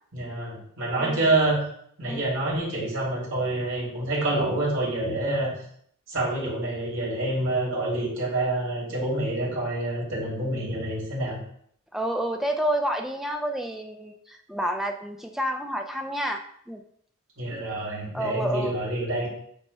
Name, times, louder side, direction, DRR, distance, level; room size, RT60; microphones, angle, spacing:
voice 1, 0.1-1.6 2.0-5.5 6.1-11.4 17.4-19.3, right 2 dB, 80° right, -5 dB, 2.8 m, -27 dB
voice 2, 11.9-16.8 18.1-18.7, right 1 dB, ahead, 3 dB, 0.4 m, -29 dB
8.3 x 5.8 x 2.2 m, 0.65 s
head